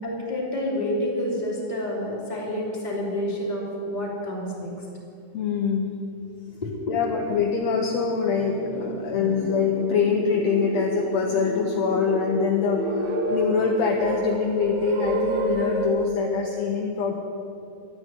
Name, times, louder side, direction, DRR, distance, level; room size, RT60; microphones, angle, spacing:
voice 1, 0.0-4.7 6.6-7.0, left 1 dB, 15° left, -4 dB, 2.8 m, -29 dB
voice 2, 5.3-5.9 6.9-17.1, left 5 dB, 70° left, 2 dB, 1.9 m, -24 dB
sound 1, 7.2-7.3 7.8-15.9, right 2 dB, 65° right, 2.9 m, -30 dB
12.5 x 9.7 x 8.9 m, 2.7 s
omnidirectional pair, 3.7 m